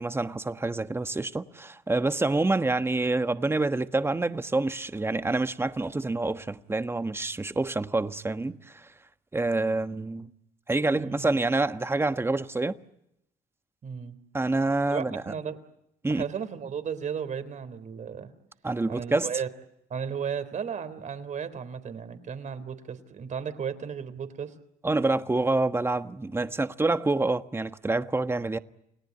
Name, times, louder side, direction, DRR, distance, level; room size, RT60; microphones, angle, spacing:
voice 1, 0.0-8.9 9.3-10.3 10.7-12.8 14.3-15.3 16.0-16.2 18.6-19.3 24.8-28.6, right 2 dB, 15° right, 1.3 m, -27 dB
voice 2, 11.0-11.3 13.8-14.2 14.9-15.6 16.1-18.3 18.9-19.5 19.9-24.5, right 7 dB, 55° right, 3.6 m, -34 dB
29.5 x 18.5 x 9.5 m
cardioid pair, 80°, 15 cm